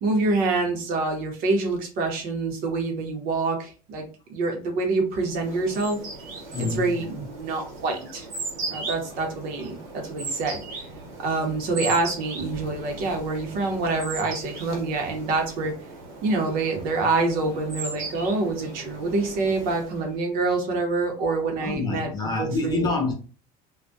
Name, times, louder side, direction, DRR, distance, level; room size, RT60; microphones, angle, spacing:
voice 1, 0.0-6.0 6.6-8.3 8.7-10.9 11.2-15.7 16.2-22.1 22.4-22.9, right 3 dB, 55° right, 0.8 m, -26 dB
sound 1, 5.2-20.2, right 3 dB, 75° right, 1.1 m, -37 dB
voice 2, 6.5-7.0 21.6-23.1, left 3 dB, 20° left, 0.6 m, -27 dB
2.3 x 2.1 x 2.5 m
cardioid pair, 165°, 18 cm